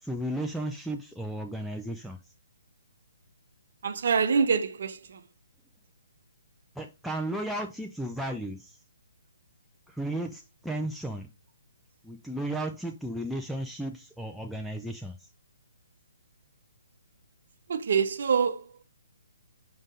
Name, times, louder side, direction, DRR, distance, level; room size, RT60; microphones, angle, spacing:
voice 1, 0.0-2.2 6.8-8.8 9.9-11.3 12.0-15.3, right 1 dB, ahead, 0.4 m, -34 dB
voice 2, 3.8-5.2 17.7-18.8, right 6 dB, 55° right, 0.7 m, -26 dB
5.4 x 5.1 x 3.7 m
figure-of-eight pair, 135°, 0 cm